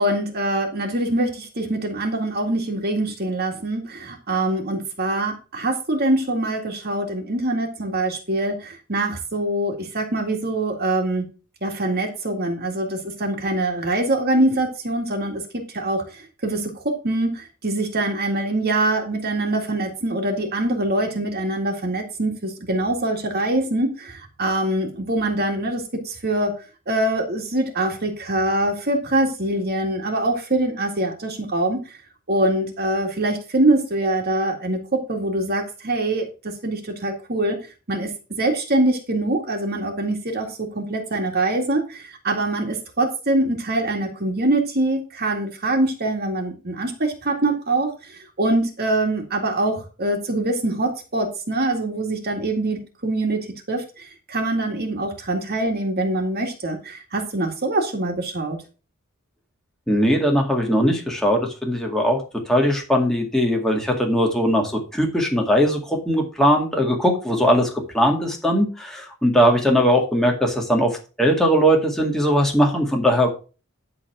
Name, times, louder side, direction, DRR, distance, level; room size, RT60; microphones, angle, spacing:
voice 1, 0.0-11.3 11.6-26.5 26.9-32.0 32.3-37.6 37.9-38.1 38.4-58.6, right 2 dB, 45° right, 2 dB, 2.0 m, -24 dB
voice 2, 59.9-62.2 62.5-73.3, equal, ahead, 0 dB, 2.1 m, -20 dB
11.0 x 4.0 x 6.0 m, 0.34 s
head